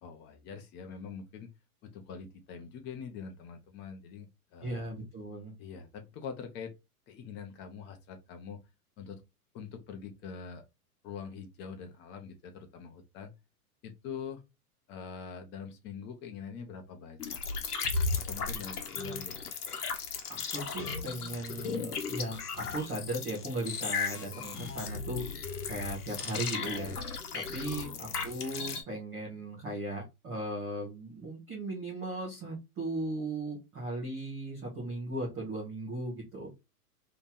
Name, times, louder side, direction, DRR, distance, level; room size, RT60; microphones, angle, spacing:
voice 1, 0.0-1.5 1.8-4.9 5.6-6.7 7.1-8.6 9.0-9.2 9.5-10.6 11.0-13.3 13.8-14.4 14.9-17.6 18.3-19.4 27.7-28.1, left 6 dB, 25° left, 0.7 m, -44 dB
voice 2, 4.6-5.5 20.3-26.9 27.3-36.5, right 1 dB, 10° right, 0.3 m, -37 dB
sound 1, 17.2-28.8, left 5 dB, 80° left, 1.0 m, -36 dB
2.9 x 2.5 x 3.5 m
hypercardioid pair, 120°, 45 cm